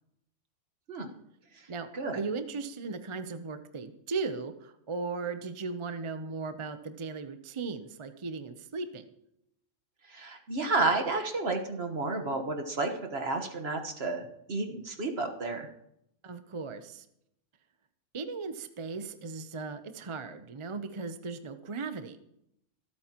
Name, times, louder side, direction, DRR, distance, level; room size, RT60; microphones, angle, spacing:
voice 1, 1.7-9.0 16.2-17.1 18.1-22.2, right 4 dB, 35° right, 9 dB, 0.5 m, -37 dB
voice 2, 10.1-15.7, right 3 dB, 55° right, 4 dB, 1.5 m, -31 dB
25.5 x 8.6 x 2.9 m, 0.77 s
omnidirectional pair, 1.3 m